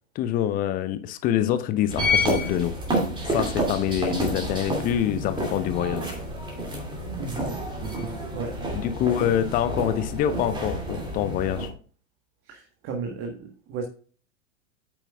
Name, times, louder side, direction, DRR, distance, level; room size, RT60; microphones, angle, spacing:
voice 1, 0.1-2.7 3.2-6.1 8.7-11.7, left 11 dB, 20° left, 12 dB, 0.7 m, -25 dB
sound 1, 1.9-11.7, equal, 10° right, 2.6 m, -29 dB
voice 2, 7.2-8.6 12.4-13.8, right 5 dB, 30° right, 2 dB, 1.5 m, -35 dB
8.9 x 8.2 x 2.4 m, 0.40 s
figure-of-eight pair, 100°, 39 cm